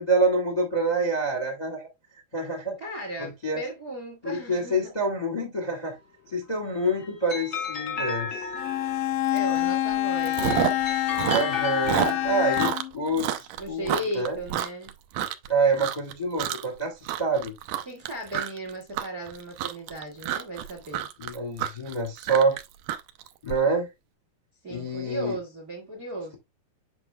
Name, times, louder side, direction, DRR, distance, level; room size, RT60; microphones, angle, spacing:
voice 1, 0.0-1.9 2.3-2.8 3.2-3.6 4.2-6.0 6.3-8.5 11.3-14.4 15.5-17.5 21.2-22.6 23.4-23.9 24.7-25.3, right 2 dB, 30° left, 0.7 m, -27 dB
voice 2, 2.8-4.9 9.3-10.9 13.6-14.9 17.8-21.1 24.6-26.3, right 1 dB, 40° right, 1.2 m, -36 dB
sound 1, 6.6-9.3 10.2-12.6, left 6 dB, 55° left, 1.0 m, -34 dB
Bowed string instrument, 8.6-13.0, left 13 dB, 80° left, 2.0 m, -26 dB
Chewing mastication, 9.4-9.6 9.9-10.9 11.1-15.5 15.8-16.1 16.4-16.8 17.0-23.6, right 11 dB, 85° right, 1.9 m, -29 dB
7.9 x 6.1 x 2.3 m
omnidirectional pair, 4.6 m